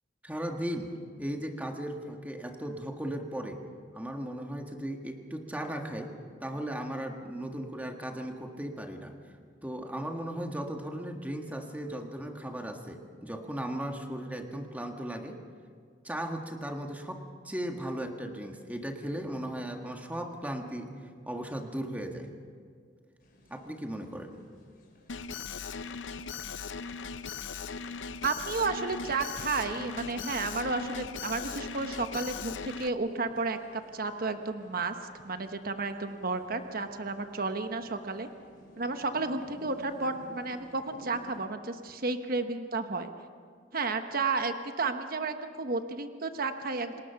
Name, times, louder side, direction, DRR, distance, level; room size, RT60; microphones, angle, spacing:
voice 1, 0.2-3.6 3.9-6.1 6.4-9.2 9.6-15.4 16.0-20.9 21.3-22.3 23.5-24.4, right 1 dB, 10° right, 3 dB, 1.7 m, -37 dB
sound 1, 23.2-41.4, left 1 dB, 50° left, 5.0 m, -56 dB
Alarm, 25.1-32.9, left 5 dB, 75° left, 0.7 m, -39 dB
voice 2, 28.2-38.3 38.8-43.1 43.7-47.0, right 3 dB, 50° right, 7 dB, 1.1 m, -32 dB
29.0 x 19.0 x 5.8 m, 2.1 s
head